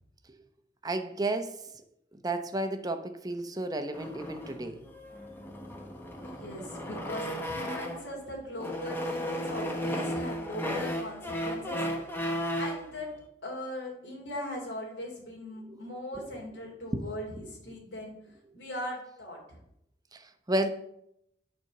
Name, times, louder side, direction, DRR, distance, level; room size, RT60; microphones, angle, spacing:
voice 1, 0.8-1.5 2.1-4.8 15.7-15.8 16.9-17.0 20.1-20.7, right 1 dB, 20° right, 0.8 m, -32 dB
sound 1, 3.9-8.1 8.6-12.9, equal, 15° left, 1.1 m, -35 dB
voice 2, 6.2-11.9 12.6-13.1 13.4-18.1 18.5-19.6, left 1 dB, 80° left, 2.8 m, -39 dB
9.3 x 4.4 x 6.6 m
head